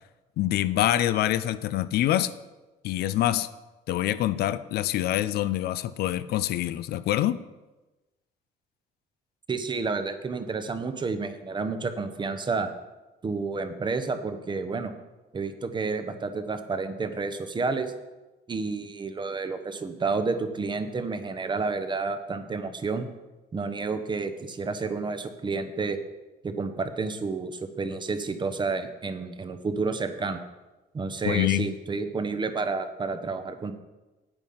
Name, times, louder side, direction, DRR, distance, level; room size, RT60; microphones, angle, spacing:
voice 1, 0.4-2.3 2.8-3.5 3.9-7.4 31.2-31.7, left 13 dB, 70° left, 14 dB, 0.5 m, -25 dB
voice 2, 9.5-12.7 13.2-14.9 15.3-17.9 18.5-23.1 23.5-26.0 26.4-30.4 30.9-33.7, right 4 dB, 25° right, 9 dB, 1.0 m, -30 dB
9.0 x 8.3 x 5.7 m, 1.1 s
cardioid pair, 110°, 17 cm